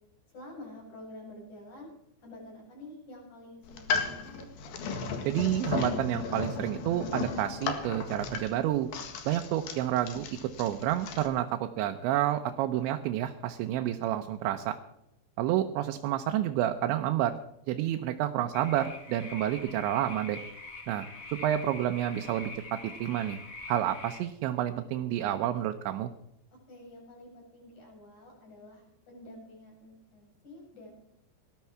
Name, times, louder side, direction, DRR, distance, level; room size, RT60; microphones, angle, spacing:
voice 1, 0.3-1.9 2.2-4.5 26.7-30.9, left 1 dB, 40° left, -1 dB, 8.5 m, -48 dB
sound 1, 3.6-11.3, left 5 dB, 60° left, 3.2 m, -35 dB
voice 2, 5.3-8.9 9.3-14.8 15.4-17.3 17.7-20.4 20.9-23.4 23.7-26.1, right 12 dB, 85° right, 5 dB, 3.1 m, -29 dB
sound 2, 18.5-24.2, left 3 dB, 85° left, 0.7 m, -44 dB
19.0 x 13.0 x 4.7 m, 0.81 s
omnidirectional pair, 5.2 m